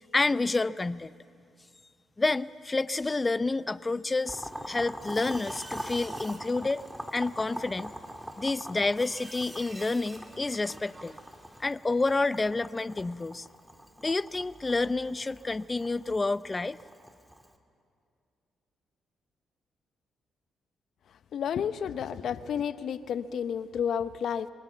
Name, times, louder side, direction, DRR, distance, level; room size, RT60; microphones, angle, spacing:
voice 1, 0.1-1.1 2.2-6.8 7.1-7.9 8.4-11.1 11.6-13.5 14.0-16.8, left 3 dB, 25° left, 17 dB, 0.6 m, -29 dB
Boiling, 4.3-17.5, equal, 5° right, 2.0 m, -43 dB
sound 1, 4.4-11.6, right 1 dB, 20° right, 2.8 m, -50 dB
voice 2, 21.3-24.5, left 8 dB, 65° left, 14 dB, 0.7 m, -31 dB
24.0 x 19.0 x 8.0 m, 2.4 s
supercardioid pair, 55°, 0 cm